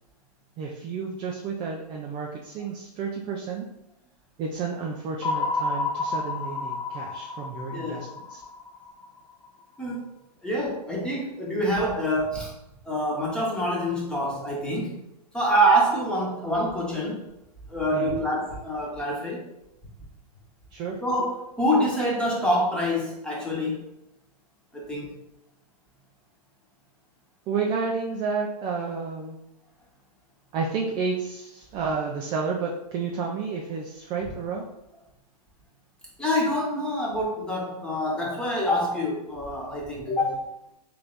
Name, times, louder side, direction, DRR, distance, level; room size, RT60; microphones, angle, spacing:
voice 1, 0.6-3.7 4.4-8.4 17.9-18.2 20.7-21.0 27.5-29.4 30.5-34.6, right 5 dB, 20° right, -1 dB, 0.4 m, -31 dB
sound 1, 5.2-9.5, left 3 dB, 75° left, 0.7 m, -31 dB
voice 2, 7.7-8.0 9.8-10.1 10.4-12.5 12.8-15.0 15.3-17.2 17.7-19.4 21.0-23.8 24.7-25.1 36.2-40.4, equal, 5° left, -5 dB, 1.1 m, -26 dB
3.3 x 3.2 x 3.9 m, 0.86 s
hypercardioid pair, 135°, 21 cm